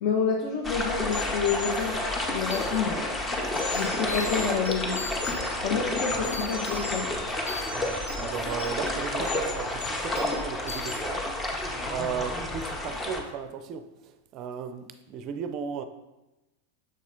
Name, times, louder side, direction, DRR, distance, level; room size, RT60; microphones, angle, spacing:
voice 1, 0.0-2.0 2.3-3.0 3.7-5.0 5.6-7.1, left 6 dB, 50° left, 0 dB, 0.7 m, -28 dB
sound 1, 0.6-13.2, left 1 dB, 15° left, 0.8 m, -30 dB
sound 2, 1.1-2.8 3.4-5.6 5.9-7.0 7.3-8.8 9.2-9.5 9.8-10.4 10.7-10.9, left 5 dB, 75° left, 1.3 m, -38 dB
voice 2, 7.7-11.3 11.9-15.8, right 7 dB, 35° right, 10 dB, 0.5 m, -35 dB
6.6 x 4.1 x 3.7 m, 1.0 s
figure-of-eight pair, 90°, 0 cm